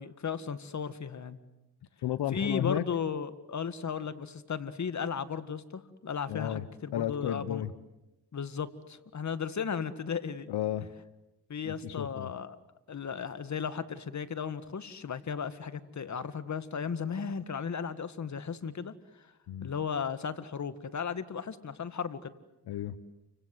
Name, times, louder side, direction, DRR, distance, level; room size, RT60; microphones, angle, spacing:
voice 1, 0.0-1.4 2.3-7.6 8.3-10.5 11.5-12.6 12.9-19.3 19.6-22.3, left 6 dB, 45° left, 13 dB, 1.9 m, -35 dB
voice 2, 2.0-2.9 6.3-6.6 6.9-7.7 10.5-10.9 11.6-12.3 19.5-19.7 22.7-23.0, left 11 dB, 80° left, 14 dB, 1.1 m, -33 dB
29.5 x 25.5 x 7.9 m, 0.94 s
cardioid pair, 75°, 39 cm